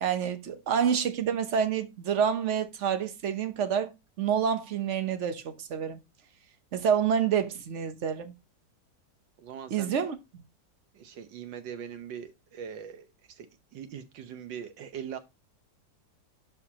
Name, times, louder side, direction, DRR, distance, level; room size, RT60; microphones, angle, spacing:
voice 1, 0.0-3.9 4.2-6.0 6.7-8.3 9.7-10.2, right 8 dB, 55° right, 0.9 m, -28 dB
voice 2, 9.4-9.9 10.9-15.2, right 8 dB, 90° right, 1.6 m, -41 dB
11.0 x 4.7 x 2.8 m
omnidirectional pair, 1.9 m